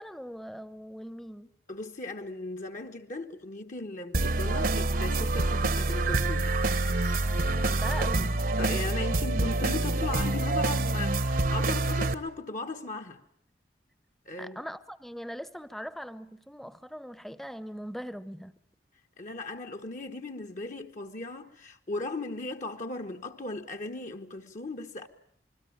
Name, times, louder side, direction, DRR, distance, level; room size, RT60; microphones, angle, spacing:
voice 1, 0.0-1.5 7.2-8.5 14.4-18.5, equal, ahead, 1.0 m, -40 dB
voice 2, 1.7-6.5 8.6-13.2 14.2-14.6 19.2-25.1, left 2 dB, 45° left, 1.4 m, -37 dB
sound 1, 4.1-12.1, right 2 dB, 55° right, 1.1 m, -27 dB
27.5 x 21.5 x 8.7 m
head